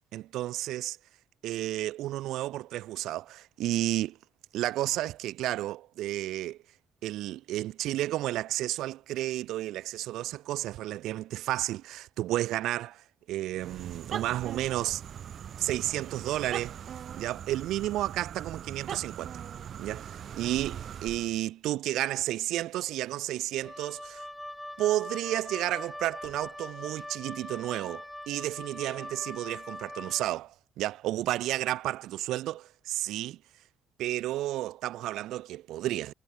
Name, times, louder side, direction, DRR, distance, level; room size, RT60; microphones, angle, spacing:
voice 1, 0.1-1.0 1.4-4.2 4.5-6.6 7.0-15.0 15.6-16.8 17.1-19.4 19.8-24.2 24.8-33.4 34.0-36.1, right 15 dB, 90° right, 1.0 m, -32 dB
sound 1, 13.5-21.4, right 9 dB, 60° right, 3.5 m, -40 dB
Wind instrument woodwind instrument, 23.6-30.3, left 1 dB, 5° left, 6.2 m, -42 dB
cardioid pair, 90°, 0 cm